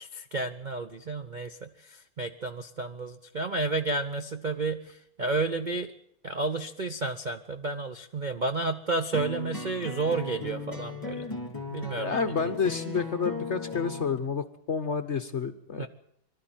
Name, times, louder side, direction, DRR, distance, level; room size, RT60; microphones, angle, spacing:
voice 1, 0.0-5.9 6.2-11.2 11.7-12.1 15.8-15.9, right 3 dB, 50° right, 8 dB, 0.5 m, -31 dB
sound 1, 9.1-14.2, left 3 dB, 10° left, 3.6 m, -36 dB
voice 2, 11.9-15.9, left 5 dB, 45° left, 10 dB, 0.9 m, -30 dB
23.0 x 13.0 x 9.1 m, 0.73 s
omnidirectional pair, 2.2 m